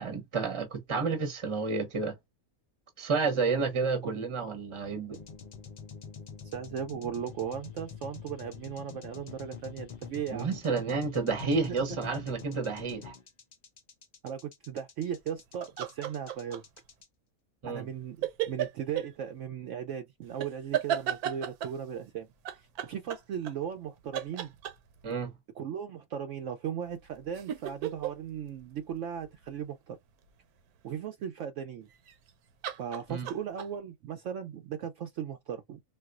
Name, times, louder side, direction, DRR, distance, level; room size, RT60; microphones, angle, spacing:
voice 1, 0.0-2.2 3.0-5.2 10.3-13.1 17.6-17.8 25.0-25.3 33.1-33.3, right 4 dB, 25° right, 0.8 m, -30 dB
sound 1, 5.1-17.0, left 6 dB, 55° left, 0.4 m, -46 dB
voice 2, 6.5-10.5 14.2-16.6 17.7-22.3 22.5-24.5 25.6-30.0 30.8-31.9 32.8-35.8, right 8 dB, 70° right, 0.8 m, -37 dB
sound 2, 15.6-16.8 18.2-19.1 20.4-21.8 22.5-23.9 24.1-25.1 26.9-29.5 31.9-32.3 32.6-33.7, right 10 dB, 85° right, 1.2 m, -34 dB
4.0 x 2.3 x 2.4 m
omnidirectional pair, 1.6 m